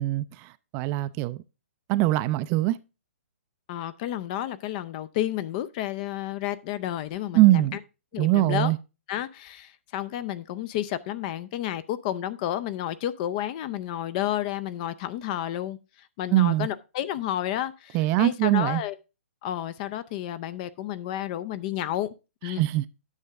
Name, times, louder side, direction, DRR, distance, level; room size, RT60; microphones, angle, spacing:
voice 1, 0.0-1.4 1.9-2.8 7.3-7.8 8.2-8.8 16.3-16.7 17.9-18.8 22.5-22.8, right 16 dB, 30° right, 0.4 m, -22 dB
voice 2, 3.7-7.8 8.1-8.7 9.1-15.8 16.2-19.0 19.4-22.1 22.4-22.7, left 12 dB, 35° left, 0.6 m, -31 dB
9.7 x 6.4 x 3.5 m
hypercardioid pair, 135°, 7 cm